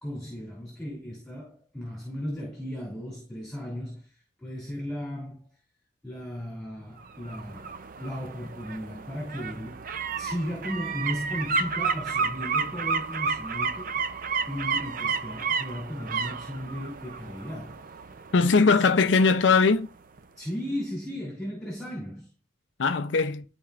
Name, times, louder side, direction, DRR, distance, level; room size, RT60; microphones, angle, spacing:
voice 1, 0.0-4.1 4.4-5.4 6.0-7.7 8.0-9.8 10.2-13.9 14.5-18.0 20.4-22.3, equal, 5° left, 2.6 m, -36 dB
sound 1, 7.0-19.8 20.2-20.3, right 5 dB, 50° right, 0.5 m, -32 dB
voice 2, 18.3-19.9 22.8-23.4, left 4 dB, 85° left, 0.6 m, -20 dB
11.5 x 4.4 x 2.4 m
head